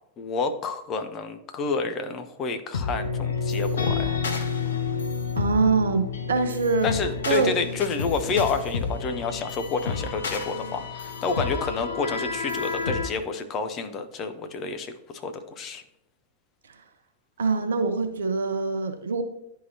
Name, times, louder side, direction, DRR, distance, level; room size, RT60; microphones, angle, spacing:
voice 1, 0.2-4.2 6.8-15.8, left 4 dB, 30° left, 7 dB, 0.7 m, -29 dB
sound 1, 2.7-13.1, left 5 dB, 65° left, 0.6 m, -29 dB
voice 2, 5.4-6.9 7.3-7.5 17.4-19.2, right 4 dB, 65° right, 8 dB, 0.7 m, -24 dB
11.0 x 3.7 x 2.8 m, 0.79 s
figure-of-eight pair, 90°, 0 cm